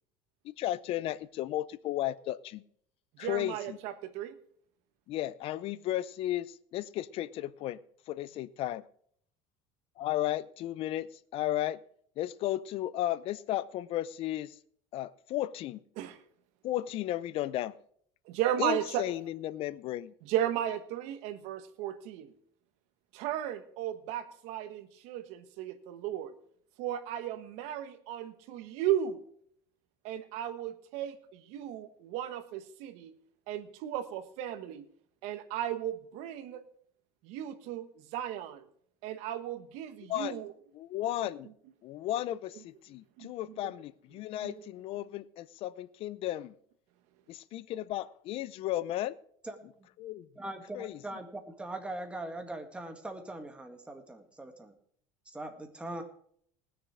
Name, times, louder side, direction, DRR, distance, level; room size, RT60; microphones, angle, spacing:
voice 1, 0.4-2.6 3.2-3.8 5.1-7.8 8.1-8.8 10.0-11.1 11.3-11.8 12.2-14.5 14.9-15.8 16.6-17.7 18.6-20.1 40.1-40.4 40.7-41.5 41.8-46.5 47.3-49.2 50.0-50.3 50.7-51.0, left 14 dB, 55° left, 18 dB, 0.6 m, -34 dB
voice 2, 3.2-4.3 16.0-16.2 18.3-19.0 20.2-22.3 23.1-26.3 26.8-29.2 30.0-33.1 33.5-34.8 35.2-36.6 37.2-38.6 39.0-40.5 43.2-43.6 44.4-44.7, right 11 dB, 70° right, 11 dB, 1.4 m, -35 dB
voice 3, 50.4-54.7 55.3-56.0, right 1 dB, 10° right, 5 dB, 1.9 m, -41 dB
19.0 x 6.8 x 4.9 m, 0.62 s
supercardioid pair, 115°, 12 cm